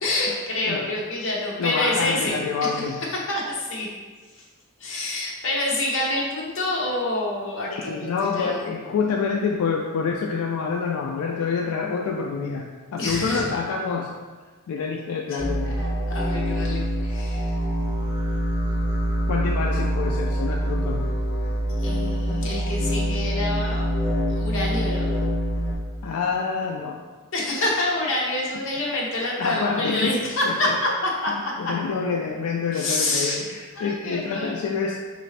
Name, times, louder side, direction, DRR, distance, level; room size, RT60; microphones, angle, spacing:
voice 1, 0.0-2.8 3.1-3.9 4.3-4.4 4.8-8.6 13.0-13.5 15.3-15.4 15.8-17.6 21.8-23.9 24.3-25.2 27.3-31.7 32.7-33.3 33.8-34.5, left 2 dB, 60° left, -3 dB, 0.9 m, -27 dB
voice 2, 1.6-3.0 7.7-14.1 14.7-15.8 19.3-21.1 26.0-27.0 29.4-30.8 31.6-35.0, left 5 dB, 85° left, 0 dB, 0.3 m, -27 dB
sound 1, 15.4-25.7, equal, 10° left, 1.1 m, -25 dB
4.8 x 2.6 x 3.2 m, 1.4 s
head